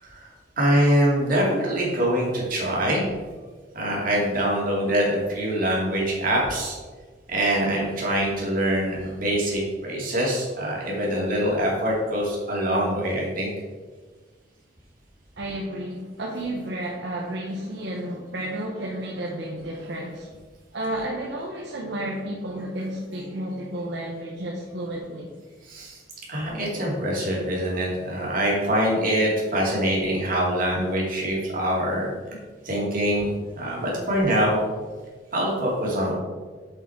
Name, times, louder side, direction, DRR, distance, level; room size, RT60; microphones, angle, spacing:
voice 1, 0.6-3.1 3.7-6.8 7.3-13.5 25.6-26.0 26.3-32.1 32.6-34.6 35.3-36.1, equal, 50° right, -3 dB, 2.5 m, -24 dB
voice 2, 15.4-20.3 20.7-25.3, right 1 dB, 65° right, -2 dB, 1.0 m, -32 dB
6.9 x 6.0 x 4.5 m, 1.4 s
head